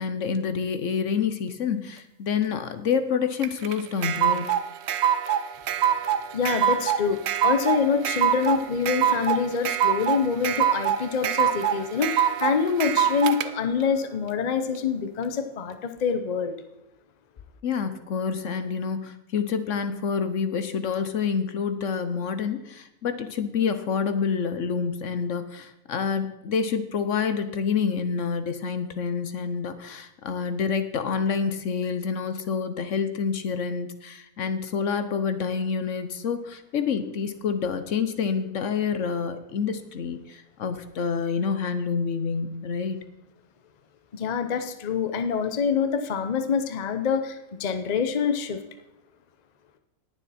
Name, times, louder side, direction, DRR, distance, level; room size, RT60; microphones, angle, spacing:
voice 1, 0.0-4.5 17.6-43.0, left 6 dB, 65° left, 10 dB, 1.1 m, -28 dB
sound 1, 3.4-13.5, right 9 dB, 60° right, 0.8 m, -24 dB
voice 2, 6.3-16.5 44.1-48.6, left 6 dB, 35° left, 8 dB, 0.8 m, -26 dB
18.5 x 7.1 x 4.2 m, 0.89 s
omnidirectional pair, 1.5 m